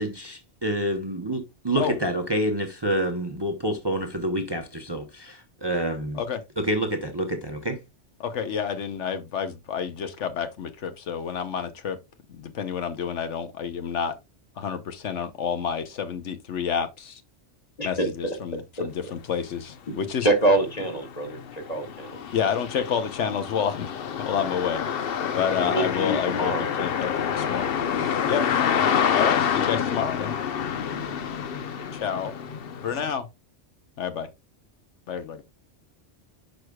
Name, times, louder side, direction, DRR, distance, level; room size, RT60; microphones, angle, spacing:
voice 1, 0.0-6.2 6.6-7.8, right 1 dB, 25° right, 0.8 m, -28 dB
voice 2, 8.2-12.0 12.4-14.1 14.6-17.2 17.8-20.3 22.3-23.9 24.2-24.8 25.3-27.8 28.3-28.4 29.1-30.3 32.0-32.3 32.8-33.3 34.0-34.3 35.1-35.4, left 7 dB, 75° left, 1.1 m, -29 dB
voice 3, 17.8-18.1 18.8-18.9 20.2-22.2 25.6-26.6, right 2 dB, 35° left, 1.8 m, -25 dB
sound 1, 19.7-19.8 20.2-33.1, left 8 dB, 55° left, 0.8 m, -27 dB
10.5 x 4.8 x 2.3 m
omnidirectional pair, 1.3 m